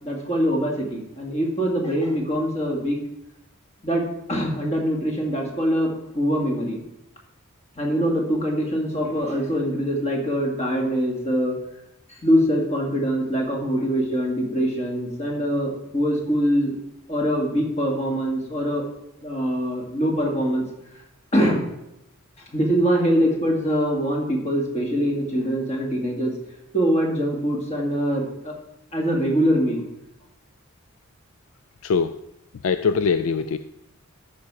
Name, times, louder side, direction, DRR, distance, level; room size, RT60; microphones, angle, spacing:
voice 1, 0.0-3.0 3.8-6.8 7.8-11.5 12.1-16.8 17.1-18.8 19.2-20.6 21.3-21.6 22.5-26.3 26.7-28.5 28.9-29.8, equal, 30° left, -1 dB, 2.1 m, -23 dB
voice 2, 31.8-32.2 32.6-33.6, left 5 dB, 70° left, 11 dB, 0.4 m, -22 dB
13.0 x 5.4 x 4.8 m, 0.84 s
head